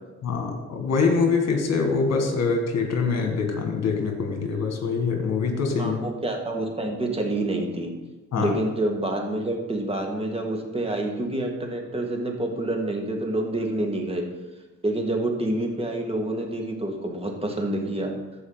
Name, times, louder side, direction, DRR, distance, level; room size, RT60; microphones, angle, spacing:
voice 1, 0.2-6.0 8.3-8.6, left 4 dB, 60° left, 3 dB, 2.0 m, -24 dB
voice 2, 5.8-7.9 8.4-14.2 14.8-18.1, right 1 dB, 20° right, 2 dB, 1.8 m, -27 dB
14.0 x 5.1 x 4.0 m, 1.1 s
cardioid pair, 90°, 30 cm